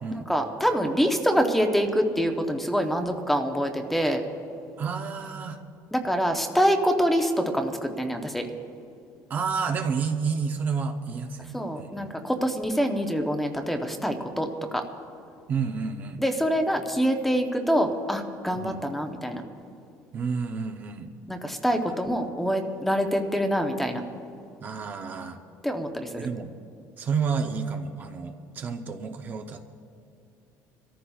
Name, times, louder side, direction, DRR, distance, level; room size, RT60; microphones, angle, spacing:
voice 1, 0.1-4.2 5.9-8.5 11.5-14.8 16.2-19.4 21.3-24.0 25.6-26.3, equal, 5° left, 5 dB, 0.7 m, -25 dB
voice 2, 4.8-5.6 9.3-12.1 15.5-16.2 18.6-18.8 20.1-21.1 24.6-25.4 26.2-26.5 27.0-29.6, right 5 dB, 30° right, 5 dB, 0.6 m, -30 dB
28.0 x 14.0 x 2.3 m, 2.6 s
cardioid pair, 170°, 6 cm